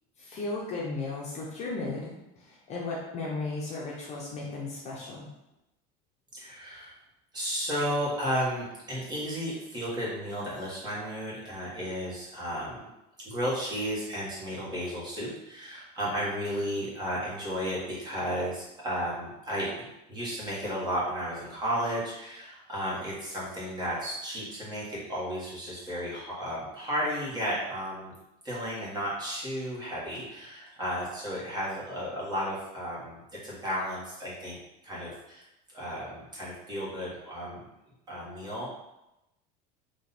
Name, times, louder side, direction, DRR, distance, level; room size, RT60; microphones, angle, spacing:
voice 1, 0.2-5.3, left 3 dB, 35° left, -3 dB, 0.8 m, -35 dB
voice 2, 6.3-7.0 7.3-12.9 13.2-28.1 28.4-34.6 34.8-35.4 35.7-37.7 38.1-38.7, equal, 20° right, -6 dB, 1.6 m, -33 dB
3.8 x 2.8 x 4.2 m, 0.91 s
cardioid pair, 150°, 20 cm